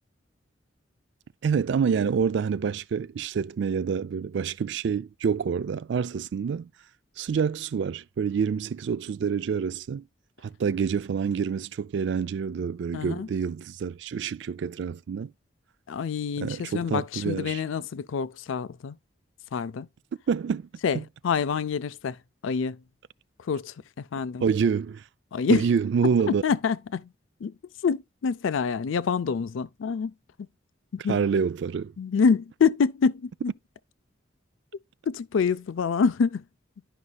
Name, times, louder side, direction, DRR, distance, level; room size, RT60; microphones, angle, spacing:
voice 1, 1.4-6.7 7.2-10.0 10.4-15.3 16.4-17.6 20.3-20.7 20.9-21.0 24.4-25.0 25.5-26.4 31.1-31.9, right 6 dB, 65° right, 0.3 m, -27 dB
voice 2, 12.9-13.3 15.9-19.0 19.5-19.9 20.8-22.2 22.4-22.8 23.4-24.4 25.3-25.6 26.4-27.1 27.4-27.5 27.8-30.1 30.9-31.2 32.0-33.3 35.1-36.4, left 5 dB, 80° left, 0.4 m, -26 dB
11.5 x 5.2 x 2.3 m
head